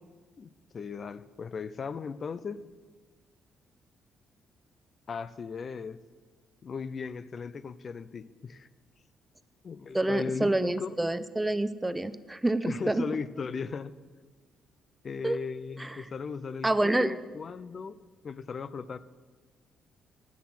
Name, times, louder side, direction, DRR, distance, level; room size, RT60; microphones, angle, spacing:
voice 1, 0.4-2.6 5.1-6.0 6.6-8.7 9.6-10.9 12.6-13.9 15.0-18.0 18.2-19.0, left 5 dB, 45° left, 15 dB, 0.4 m, -37 dB
voice 2, 9.9-13.1 15.2-15.4 15.8-16.0 16.6-17.2, right 2 dB, 10° right, 14 dB, 0.4 m, -28 dB
9.5 x 7.1 x 6.2 m, 1.4 s
cardioid pair, 90°, 0 cm